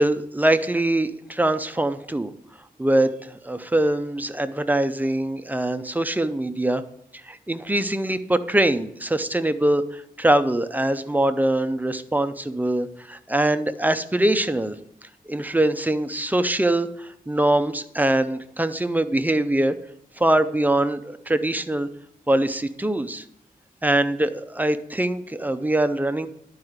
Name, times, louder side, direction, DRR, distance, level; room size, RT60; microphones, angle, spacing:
voice 1, 0.0-2.3 2.8-6.8 7.2-14.8 15.3-19.8 20.2-21.9 22.3-23.2 23.8-26.3, right 1 dB, 10° right, 10 dB, 0.6 m, -23 dB
11.5 x 4.8 x 7.9 m, 0.76 s
wide cardioid pair, 150°, 16 cm